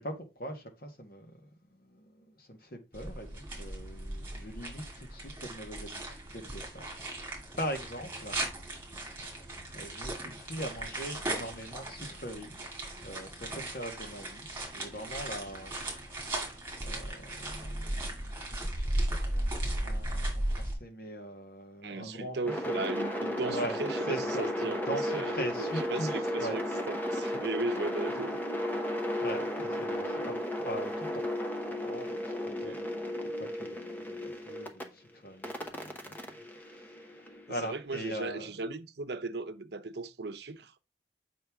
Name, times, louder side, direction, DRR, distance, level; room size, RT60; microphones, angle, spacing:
voice 1, 0.0-8.4 9.2-9.4 9.7-12.5 13.0-14.5 14.7-16.4 16.8-22.7 23.5-23.8 24.1-26.5 29.2-31.1 31.8-38.5, right 1 dB, 55° left, 1.4 m, -41 dB
sound 1, 2.9-20.7, right 1 dB, 15° right, 2.3 m, -37 dB
voice 2, 21.8-25.3 25.7-28.4 32.5-32.8 37.5-40.8, right 3 dB, 70° right, 0.7 m, -37 dB
sound 2, 22.4-34.8 35.4-37.6, left 1 dB, 10° left, 0.8 m, -34 dB
7.7 x 5.2 x 3.5 m
head